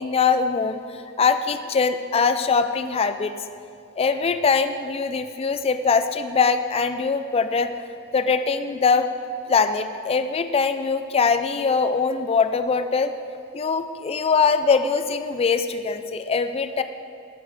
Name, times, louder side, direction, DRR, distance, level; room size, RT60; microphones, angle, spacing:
voice 1, 0.0-3.3 4.0-7.7 8.1-9.1 9.5-13.1 13.5-16.8, left 5 dB, 25° left, 9 dB, 0.3 m, -22 dB
13.0 x 6.3 x 3.4 m, 2.5 s
head